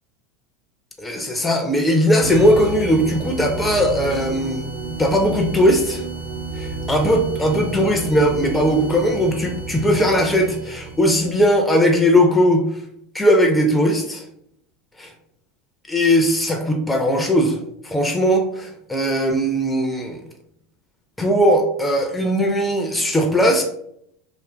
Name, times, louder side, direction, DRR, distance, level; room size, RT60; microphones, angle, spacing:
voice 1, 1.0-4.7 5.0-6.0 6.6-12.7 13.1-14.2 15.9-20.2 21.2-23.6, equal, 10° left, 2 dB, 0.4 m, -18 dB
sound 1, 2.2-11.6, right 3 dB, 85° right, 0.7 m, -31 dB
2.6 x 2.5 x 2.2 m, 0.71 s
hypercardioid pair, 90°, 0 cm